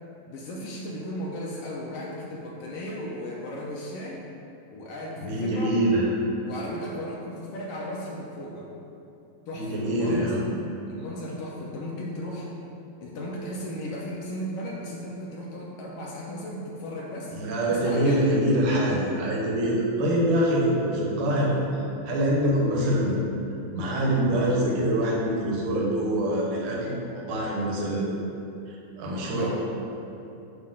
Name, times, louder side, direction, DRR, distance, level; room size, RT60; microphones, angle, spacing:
voice 1, 0.3-4.2 4.7-5.8 6.5-8.7 9.5-10.4 10.9-12.5 13.0-17.3 17.7-18.3 29.3-29.5, left 1 dB, 75° left, -3 dB, 1.4 m, -36 dB
voice 2, 5.2-6.1 9.5-10.4 17.3-21.6 22.0-23.2 23.7-28.1 28.7-29.5, right 1 dB, 75° right, -4 dB, 2.6 m, -24 dB
8.1 x 2.9 x 6.2 m, 2.8 s
omnidirectional pair, 3.5 m